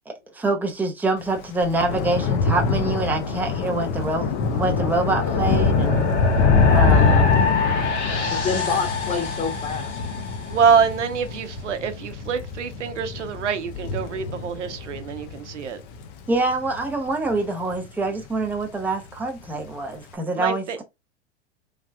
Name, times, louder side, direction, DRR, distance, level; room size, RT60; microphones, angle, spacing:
voice 1, 0.1-6.1 6.7-7.3 16.3-20.8, right 2 dB, 5° right, 0.6 m, -25 dB
Thunder / Rain, 1.3-17.9 18.2-18.7 18.9-19.1, left 5 dB, 45° left, 0.7 m, -24 dB
sound 1, 1.6-11.0, left 3 dB, 75° left, 1.5 m, -28 dB
voice 2, 5.2-5.6 6.8-7.3 8.3-9.9 10.7-10.8, left 5 dB, 20° left, 1.0 m, -28 dB
voice 3, 10.5-15.8 20.4-20.8, right 6 dB, 80° right, 0.8 m, -24 dB
3.3 x 2.4 x 2.3 m
hypercardioid pair, 100°, 36 cm